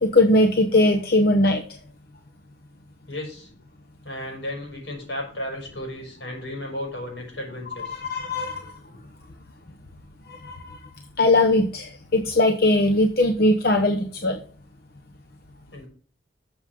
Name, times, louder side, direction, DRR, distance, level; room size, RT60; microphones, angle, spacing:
voice 1, 0.0-1.6 7.9-8.7 10.3-10.8 11.2-14.4, left 1 dB, 55° left, 3 dB, 1.0 m, -20 dB
voice 2, 3.1-3.5 4.0-8.0 15.7-15.9, left 1 dB, 80° left, 0 dB, 5.9 m, -34 dB
12.5 x 7.2 x 3.6 m, 0.43 s
head